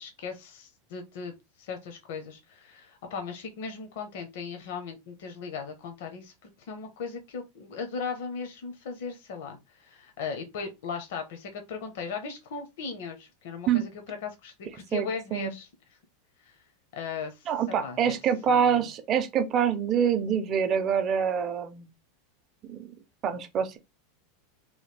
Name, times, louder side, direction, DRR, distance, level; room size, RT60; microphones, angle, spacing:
voice 1, 0.0-15.7 16.4-16.6 16.9-18.2 18.5-18.9, left 5 dB, 70° left, 0.8 m, -38 dB
voice 2, 17.5-21.9 22.7-22.8 23.2-23.8, right 8 dB, 30° right, 0.5 m, -25 dB
3.1 x 2.3 x 3.2 m
supercardioid pair, 150°, 0 cm